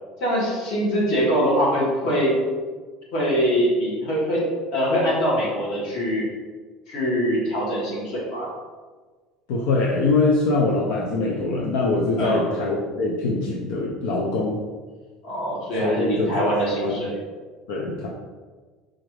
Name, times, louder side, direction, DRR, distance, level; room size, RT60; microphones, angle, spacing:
voice 1, 0.2-2.3 3.1-4.4 4.7-6.3 6.9-8.5 12.2-12.4 15.2-17.2, equal, 50° left, -5 dB, 1.4 m, -23 dB
voice 2, 9.5-14.6 15.8-17.0 17.7-18.1, left 3 dB, 75° left, -3 dB, 0.5 m, -23 dB
5.0 x 2.5 x 3.2 m, 1.4 s
cardioid pair, 170°, 0 cm